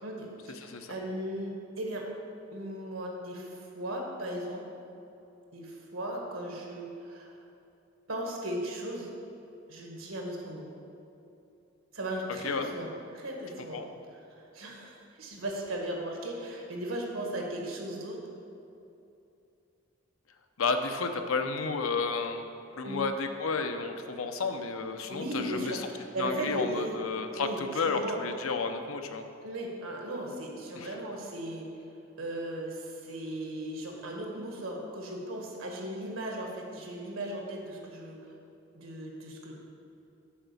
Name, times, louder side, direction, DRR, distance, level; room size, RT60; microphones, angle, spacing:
voice 1, 0.0-2.1 2.5-4.6 5.5-7.3 8.1-9.1 9.7-10.7 11.9-12.9 13.1-13.8 14.1-18.2 22.8-23.0 25.1-27.0 27.4-28.2 29.4-31.7 32.2-38.2 38.7-39.5, right 1 dB, 80° right, 0 dB, 1.5 m, -37 dB
voice 2, 0.6-0.9 12.4-12.7 13.7-13.9 20.6-22.5 22.7-25.9 26.2-29.2 30.7-30.9, left 4 dB, 80° left, 6 dB, 0.7 m, -32 dB
7.3 x 4.8 x 6.9 m, 2.8 s
head